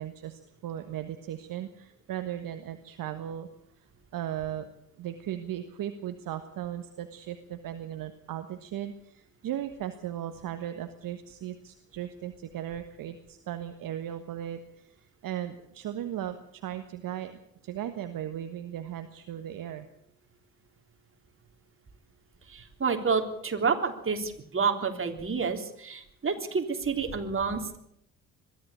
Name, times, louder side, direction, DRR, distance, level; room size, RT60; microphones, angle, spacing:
voice 1, 0.0-3.5 4.1-4.7 5.0-19.9, right 11 dB, 50° right, 8 dB, 1.5 m, -37 dB
voice 2, 22.5-27.8, right 5 dB, 30° right, 5 dB, 3.5 m, -29 dB
22.0 x 14.0 x 8.5 m, 0.73 s
figure-of-eight pair, 50°, 43 cm